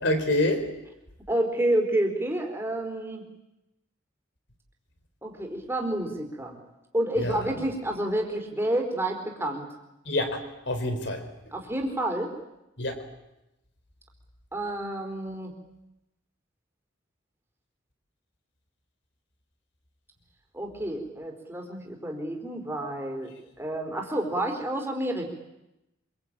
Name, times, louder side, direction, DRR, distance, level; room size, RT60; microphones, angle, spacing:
voice 1, 0.0-0.6 7.2-7.4 10.1-11.2 12.8-13.0, left 1 dB, 55° left, 7 dB, 4.3 m, -26 dB
voice 2, 1.3-3.2 5.2-6.6 6.9-9.7 11.5-12.4 14.5-15.5 20.5-23.3 23.6-25.3, right 1 dB, 10° right, 2 dB, 4.2 m, -29 dB
26.0 x 24.5 x 8.8 m, 0.92 s
head